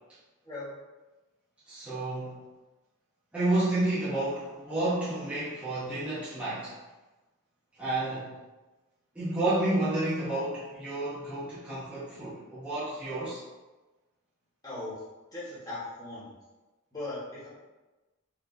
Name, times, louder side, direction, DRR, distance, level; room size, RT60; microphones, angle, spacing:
voice 1, 1.7-2.4 3.3-6.7 7.8-8.3 9.1-13.4, right 2 dB, 5° right, -11 dB, 0.8 m, -30 dB
voice 2, 14.6-14.9 15.3-16.3 16.9-17.5, left 2 dB, 15° left, -9 dB, 1.3 m, -38 dB
4.4 x 2.7 x 2.6 m, 1.1 s
head